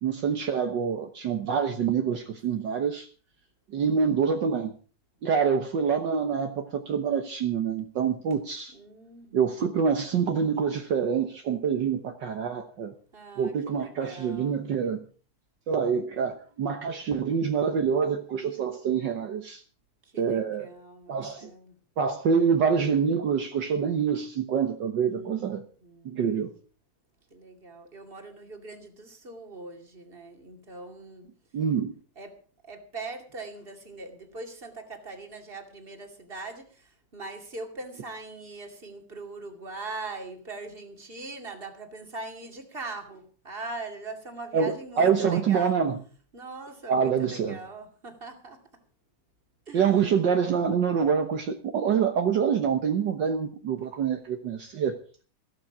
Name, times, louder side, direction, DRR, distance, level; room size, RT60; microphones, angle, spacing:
voice 1, 0.0-3.1 3.7-4.7 5.2-8.7 9.3-12.9 13.4-15.0 15.7-19.6 20.2-20.7 21.1-21.5 22.0-25.6 26.0-26.5 31.5-31.9 44.5-46.0 46.9-47.6 49.7-54.9, right 6 dB, 60° right, 5 dB, 1.1 m, -26 dB
voice 2, 8.7-9.9 13.1-14.6 20.0-21.8 25.0-25.5 25.8-26.2 27.3-31.3 32.2-32.4 32.6-45.8 46.3-48.6 49.7-49.9, right 3 dB, 20° right, 4 dB, 2.1 m, -41 dB
14.5 x 13.5 x 4.9 m, 0.40 s
omnidirectional pair, 3.5 m